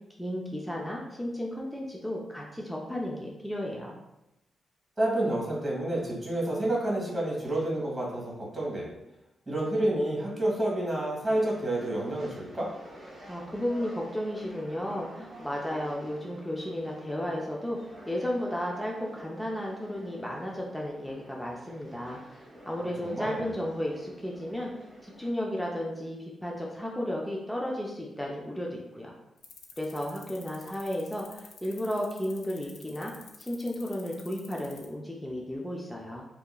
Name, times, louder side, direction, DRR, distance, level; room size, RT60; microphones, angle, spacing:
voice 1, 0.2-4.0 13.3-29.1 29.8-33.1 33.4-36.2, equal, 5° left, -2 dB, 0.4 m, -34 dB
voice 2, 5.0-8.9 9.5-12.7 23.0-23.5, right 1 dB, 15° right, -4 dB, 1.3 m, -29 dB
sound 1, 11.2-25.3, equal, 35° right, 0.9 m, -50 dB
sound 2, 29.4-34.9, left 6 dB, 80° left, 0.3 m, -50 dB
2.8 x 2.3 x 2.3 m, 0.92 s
cardioid pair, 95°, 0 cm